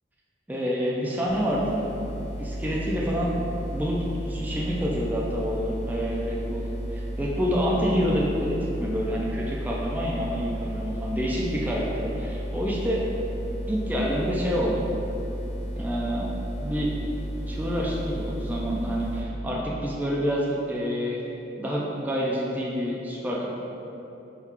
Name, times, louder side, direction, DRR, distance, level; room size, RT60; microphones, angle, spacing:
voice 1, 0.5-1.9 2.4-3.4 3.7-13.0 13.7-14.9 15.8-16.9 17.5-21.2 21.6-23.5, equal, 10° right, -5 dB, 0.3 m, -28 dB
sound 1, 1.3-19.2, equal, 85° left, 1.3 m, -33 dB
3.5 x 2.3 x 4.3 m, 3.0 s
head